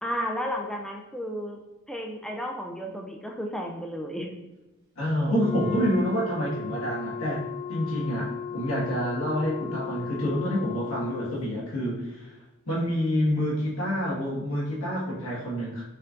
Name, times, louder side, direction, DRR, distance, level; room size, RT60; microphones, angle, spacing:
voice 1, 0.0-1.6 1.9-4.3, equal, 5° left, 1 dB, 0.3 m, -33 dB
voice 2, 5.0-7.4 7.7-12.3 12.7-15.8, equal, 80° left, -6 dB, 1.5 m, -27 dB
Wind instrument woodwind instrument, 5.3-11.4, left 5 dB, 55° right, 0.8 m, -36 dB
4.3 x 3.8 x 2.5 m, 0.99 s
head